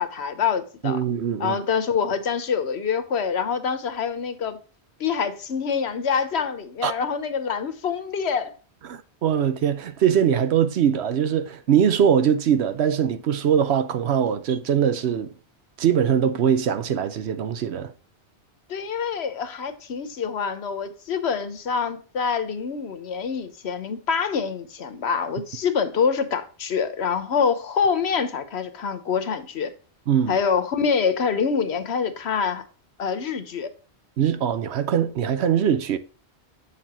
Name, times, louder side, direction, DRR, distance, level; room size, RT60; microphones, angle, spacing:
voice 1, 0.0-1.0 1.4-4.6 5.0-8.5 18.7-29.7 30.3-32.6 33.0-33.7, left 6 dB, 75° left, 1.2 m, -25 dB
voice 2, 0.8-1.6 6.8-6.9 8.9-15.3 15.8-17.9 30.1-30.4 34.2-36.0, right 8 dB, 75° right, 1.0 m, -22 dB
7.4 x 6.8 x 2.9 m
omnidirectional pair, 1.1 m